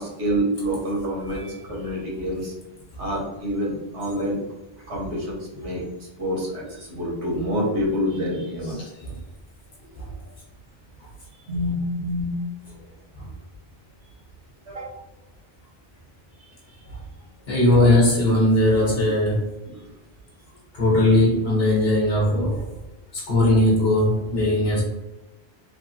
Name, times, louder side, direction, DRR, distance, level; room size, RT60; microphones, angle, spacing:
voice 1, 0.0-1.4 1.7-2.5 3.0-4.4 4.9-5.8 6.2-8.7 11.5-12.4 14.7-14.9, equal, 85° right, -5 dB, 1.4 m, -27 dB
voice 2, 17.5-19.5 20.7-22.6 23.1-24.8, left 1 dB, 65° left, -4 dB, 1.1 m, -19 dB
3.3 x 2.0 x 2.9 m, 1.0 s
omnidirectional pair, 1.1 m